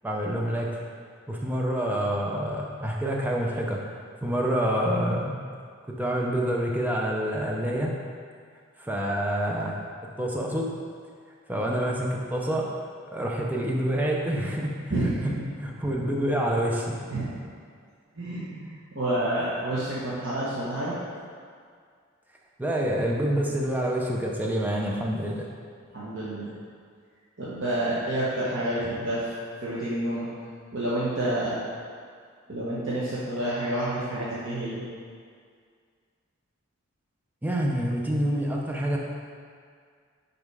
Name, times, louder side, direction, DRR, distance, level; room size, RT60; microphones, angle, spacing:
voice 1, 0.0-0.7 1.3-3.8 4.2-5.3 5.9-7.9 8.8-9.8 10.2-10.7 11.5-12.7 13.0-15.3 15.6-17.0 22.6-25.5 37.4-39.0, right 1 dB, 10° right, -2 dB, 0.6 m, -27 dB
voice 2, 14.9-15.4 17.1-17.3 18.2-20.9 25.9-26.5 27.4-29.3 29.6-30.3 30.7-31.6 32.5-34.8, right 1 dB, 65° right, -9 dB, 1.2 m, -29 dB
5.5 x 5.0 x 4.7 m, 2.1 s
head